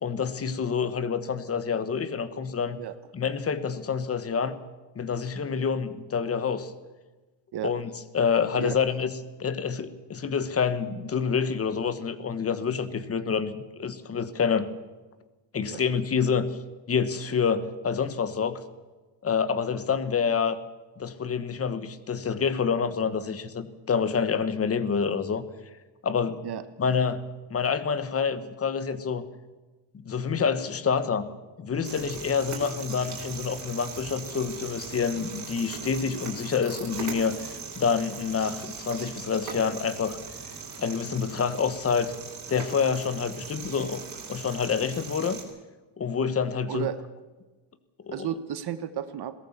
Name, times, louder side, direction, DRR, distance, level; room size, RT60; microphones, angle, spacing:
voice 1, 0.0-2.8 3.1-4.6 4.9-6.7 7.6-9.1 9.4-14.7 15.5-16.5 16.9-18.6 19.2-20.6 21.0-25.4 26.0-26.4 26.8-27.2 27.5-29.2 29.9-31.3 31.6-40.2 40.8-42.1 42.5-44.0 44.3-45.4 46.0-46.9 48.1-48.3, left 6 dB, 30° left, 13 dB, 1.2 m, -27 dB
sound 1, 31.8-45.4, right 5 dB, 35° right, 4.5 m, -40 dB
voice 2, 46.7-47.1 48.1-49.3, right 10 dB, 50° right, 11 dB, 1.2 m, -33 dB
21.0 x 17.5 x 7.2 m, 1.2 s
cardioid pair, 175°, 49 cm